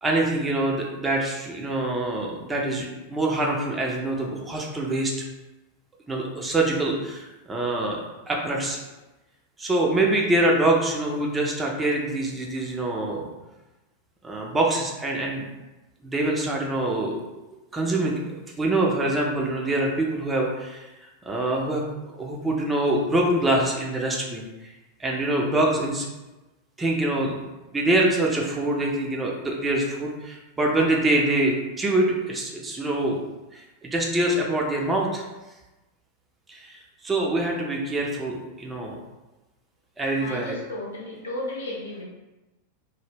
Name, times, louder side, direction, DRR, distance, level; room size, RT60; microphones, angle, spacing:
voice 1, 0.0-5.1 6.1-8.0 8.3-8.8 9.6-13.3 14.2-15.4 16.0-17.2 17.7-18.1 18.6-20.9 21.3-21.8 22.1-24.7 25.0-26.1 26.8-27.4 27.7-33.2 33.5-35.2 36.5-39.0 40.0-40.5, right 2 dB, 15° right, -1 dB, 0.4 m, -25 dB
voice 2, 40.2-42.0, left 1 dB, 65° left, -4 dB, 0.7 m, -33 dB
2.1 x 2.0 x 3.2 m, 1.1 s
figure-of-eight pair, 90°, 0 cm